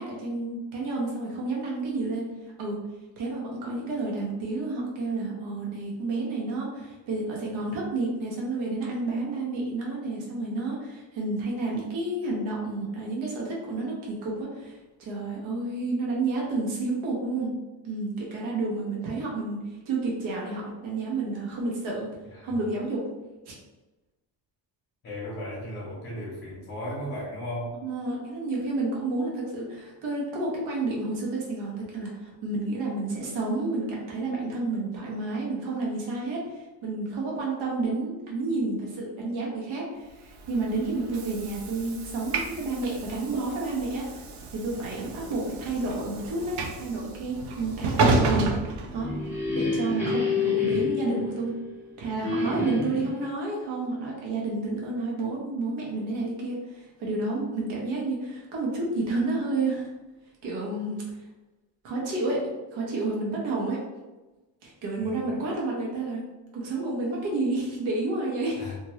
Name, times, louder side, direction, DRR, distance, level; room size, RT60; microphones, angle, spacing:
voice 1, 0.0-2.3 2.6-2.8 3.2-17.5 17.8-22.1 22.4-23.0 23.5-23.6 27.8-49.1 49.5-51.6 52.0-59.9 60.4-61.3 61.8-63.8 64.6-66.2 66.5-68.7, right 2 dB, 85° right, -3 dB, 1.0 m, -30 dB
voice 2, 25.0-27.7 65.0-65.4 68.6-68.7, equal, 30° left, -8 dB, 1.1 m, -36 dB
Train / Sliding door, 40.3-49.6, right 3 dB, 60° right, 0.6 m, -31 dB
sound 1, 48.8-51.8 52.2-53.2, left 4 dB, 5° right, 0.5 m, -28 dB
2.7 x 2.6 x 3.0 m, 1.1 s
cardioid pair, 160°, 45 cm